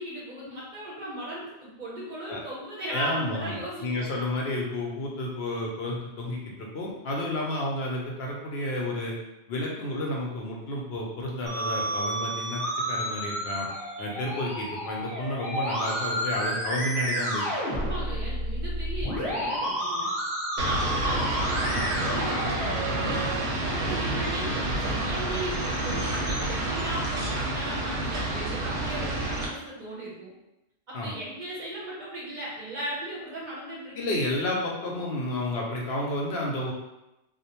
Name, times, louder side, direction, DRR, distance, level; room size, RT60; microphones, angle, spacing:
voice 1, 0.0-4.1 17.7-20.1 20.6-23.2 23.6-30.3 30.9-34.1, right 1 dB, 50° right, -6 dB, 0.7 m, -37 dB
voice 2, 2.9-9.2 9.5-13.7 14.0-17.5 21.7-21.8 23.8-24.0 30.9-31.1 34.0-36.7, left 1 dB, 70° left, -2 dB, 0.8 m, -31 dB
Musical instrument, 11.5-23.4, right 1 dB, 20° left, 0.8 m, -31 dB
sound 1, 20.6-29.5, right 1 dB, 85° right, 0.9 m, -29 dB
2.4 x 2.1 x 2.8 m, 0.93 s
omnidirectional pair, 1.1 m